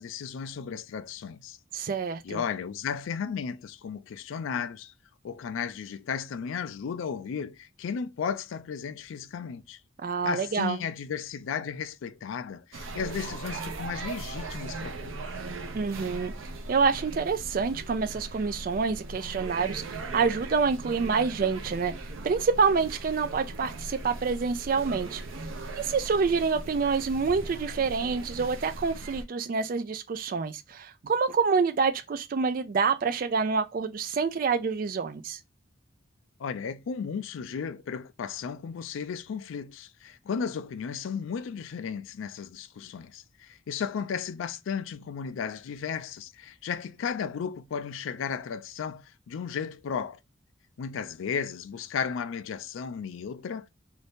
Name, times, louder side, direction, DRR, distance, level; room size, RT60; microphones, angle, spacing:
voice 1, 0.0-1.6 2.2-4.9 5.2-9.8 10.2-15.2 36.4-50.2 50.8-53.7, left 6 dB, 80° left, 0.3 m, -34 dB
voice 2, 1.7-2.4 10.0-10.8 15.7-21.9 22.2-25.2 25.7-35.4, right 5 dB, 45° right, 0.3 m, -27 dB
sound 1, 12.7-29.2, right 2 dB, 85° right, 0.6 m, -39 dB
2.7 x 2.6 x 3.3 m
head